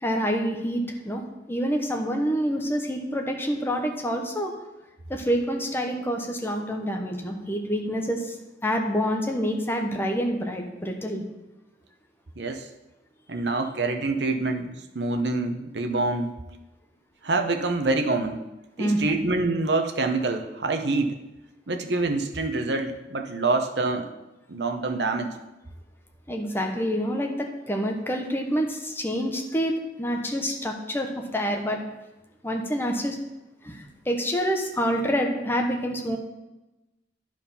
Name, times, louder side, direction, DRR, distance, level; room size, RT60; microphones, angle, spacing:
voice 1, 0.0-1.2 1.5-4.5 5.1-8.3 8.6-11.2 18.8-19.2 26.3-31.8 32.4-33.2 33.6-36.2, equal, 10° left, 2 dB, 1.0 m, -27 dB
voice 2, 12.4-12.7 13.3-16.3 17.2-18.4 18.8-21.2 21.7-24.1 24.5-25.3, right 3 dB, 65° right, 5 dB, 0.9 m, -26 dB
10.5 x 4.8 x 5.5 m, 1.0 s
head